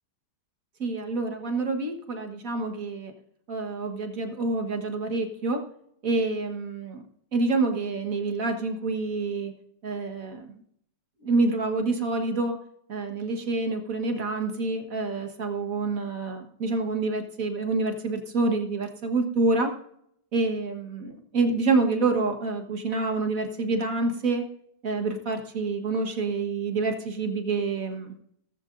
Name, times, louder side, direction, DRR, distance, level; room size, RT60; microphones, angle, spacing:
voice 1, 0.8-3.1 3.5-5.6 6.0-7.0 7.3-9.5 9.8-10.5 11.2-12.6 12.9-19.7 20.3-24.4 24.8-28.1, right 3 dB, 50° right, 4 dB, 1.8 m, -27 dB
17.5 x 14.5 x 2.6 m, 0.70 s
omnidirectional pair, 1.9 m